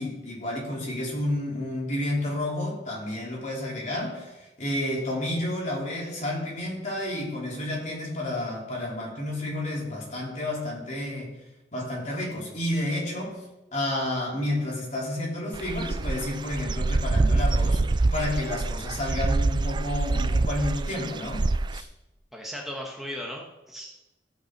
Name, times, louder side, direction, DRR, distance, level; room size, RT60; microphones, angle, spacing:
voice 1, 0.0-11.3 11.7-13.4 13.7-17.8 18.1-21.9, left 1 dB, 45° left, -3 dB, 3.3 m, -30 dB
Dog / Bird, 15.5-21.8, right 2 dB, 25° right, 0.3 m, -26 dB
voice 2, 22.3-24.0, equal, ahead, -1 dB, 1.1 m, -37 dB
14.5 x 5.8 x 5.9 m, 1.0 s
head